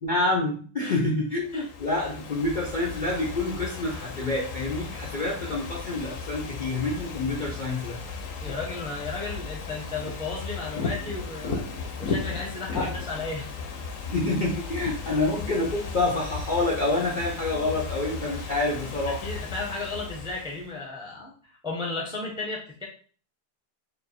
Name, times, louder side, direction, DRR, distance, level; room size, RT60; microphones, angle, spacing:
voice 1, 0.0-8.0 12.7-12.9 14.1-19.2, left 2 dB, 85° left, -4 dB, 0.4 m, -27 dB
Ocean / Fireworks, 1.4-20.7, left 4 dB, 65° left, 0.8 m, -35 dB
voice 2, 8.4-11.7 12.0-13.5 15.0-15.2 19.2-22.8, left 3 dB, 5° right, -1 dB, 0.4 m, -34 dB
3.4 x 2.4 x 4.1 m, 0.42 s
omnidirectional pair, 1.9 m